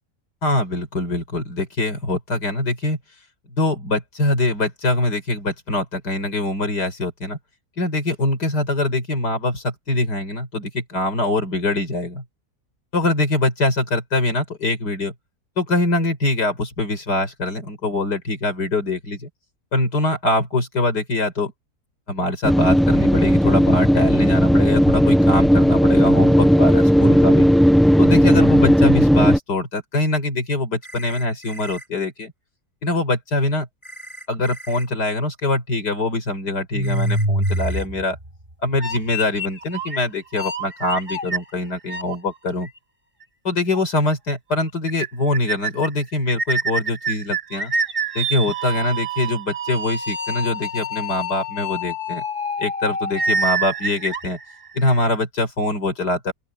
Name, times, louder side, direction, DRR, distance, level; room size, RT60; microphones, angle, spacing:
voice 1, 0.4-3.0 3.5-7.4 7.8-12.2 12.9-15.1 15.6-19.3 19.7-21.5 22.1-27.4 28.0-32.3 32.8-33.7 34.3-38.2 38.6-42.7 43.4-47.7 48.1-52.2 52.6-54.4 54.7-56.3, left 2 dB, 80° left, 5.7 m, -23 dB
sound 1, 22.4-29.4, equal, ahead, 0.9 m, -15 dB
sound 2, 30.8-31.9 33.8-34.9 36.8-37.9, right 1 dB, 15° left, 7.8 m, -40 dB
sound 3, 36.7-38.3 38.8-40.0 40.3-42.2 42.6-42.7 43.7-43.8 44.1-44.2 44.5-44.6 44.9-45.1 45.3-45.9 46.3-55.0, right 2 dB, 25° right, 6.4 m, -26 dB
open air
omnidirectional pair, 1.8 m